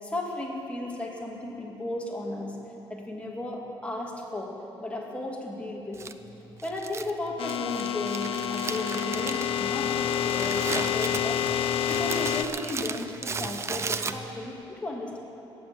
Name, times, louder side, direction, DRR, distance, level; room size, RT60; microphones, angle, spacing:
voice 1, 0.0-2.6 2.9-4.5 4.8-6.0 6.6-11.5 11.9-15.2, left 2 dB, 10° left, -2 dB, 2.0 m, -35 dB
Crumpling crinkling, 5.9-14.6, right 5 dB, 30° right, 0.5 m, -36 dB
sound 1, 7.4-12.4, left 9 dB, 70° left, 0.6 m, -28 dB
18.5 x 7.7 x 7.6 m, 3.0 s
cardioid pair, 140°, 10 cm